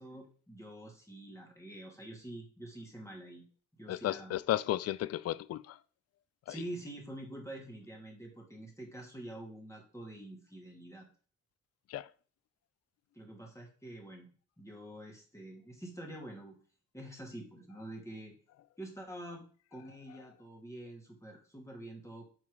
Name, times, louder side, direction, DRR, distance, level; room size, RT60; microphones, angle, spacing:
voice 1, 0.0-3.4 3.8-4.3 6.5-11.1 13.1-14.3 14.6-16.6 16.9-18.4 18.8-19.4 19.7-22.2, right 1 dB, 10° left, 2.4 m, -46 dB
voice 2, 3.9-5.8 6.5-6.6 11.9-12.1, left 13 dB, 45° left, 0.4 m, -34 dB
4.9 x 4.1 x 4.9 m
hypercardioid pair, 50°, 36 cm